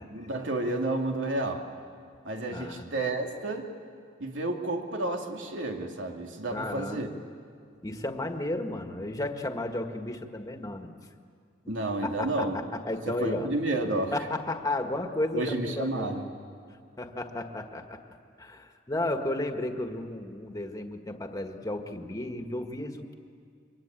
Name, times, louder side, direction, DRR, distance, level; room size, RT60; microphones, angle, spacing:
voice 1, 0.1-1.6 2.2-3.7 4.2-7.1 11.7-12.6 13.1-14.1 15.3-16.3, right 2 dB, 85° right, 2 dB, 2.6 m, -31 dB
voice 2, 2.5-2.8 6.5-7.1 7.8-10.9 11.6-13.5 14.1-16.1 17.0-18.0 18.4-23.1, left 1 dB, 20° left, 5 dB, 1.6 m, -33 dB
26.5 x 23.5 x 9.0 m, 2.3 s
head